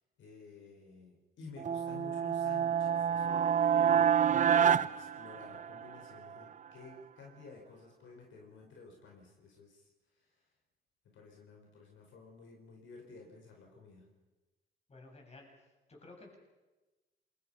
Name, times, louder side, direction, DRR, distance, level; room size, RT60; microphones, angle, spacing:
voice 1, 0.2-3.5 3.8-9.9 10.1-10.3 11.1-14.1, left 4 dB, 75° left, 1 dB, 5.1 m, -53 dB
sound 1, 1.6-5.9, right 8 dB, 40° right, 0.7 m, -28 dB
voice 2, 14.9-15.5 15.9-16.4, left 2 dB, 30° left, 1 dB, 7.4 m, -53 dB
27.5 x 22.5 x 5.7 m, 1.2 s
cardioid pair, 90°, 20 cm